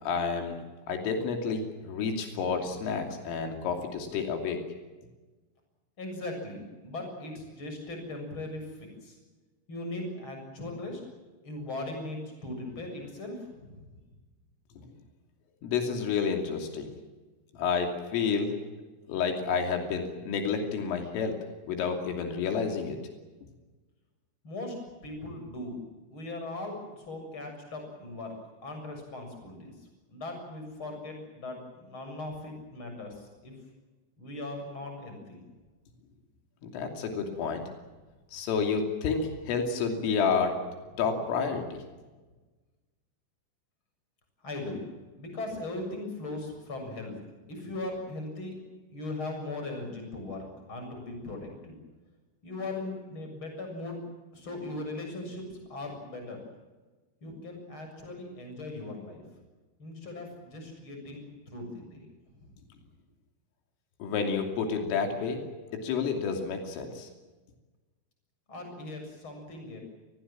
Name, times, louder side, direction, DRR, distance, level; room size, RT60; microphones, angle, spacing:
voice 1, 0.0-0.6 0.9-4.6 14.8-14.9 15.6-16.9 17.5-18.5 19.1-21.4 21.7-23.0 36.6-37.6 38.3-40.6 41.0-41.8 64.0-65.4 65.8-67.1, left 5 dB, 85° left, 4 dB, 5.4 m, -30 dB
voice 2, 6.0-9.2 9.7-11.0 11.4-14.0 24.4-24.8 25.0-25.8 26.1-28.3 28.6-33.5 34.2-35.4 44.4-44.8 45.2-47.2 47.5-48.6 48.9-51.8 52.4-54.0 54.3-56.4 57.2-59.2 59.8-62.1 62.3-62.5 68.5-69.8, left 2 dB, 25° left, 4 dB, 7.6 m, -39 dB
28.5 x 20.0 x 7.5 m, 1.2 s
omnidirectional pair, 5.7 m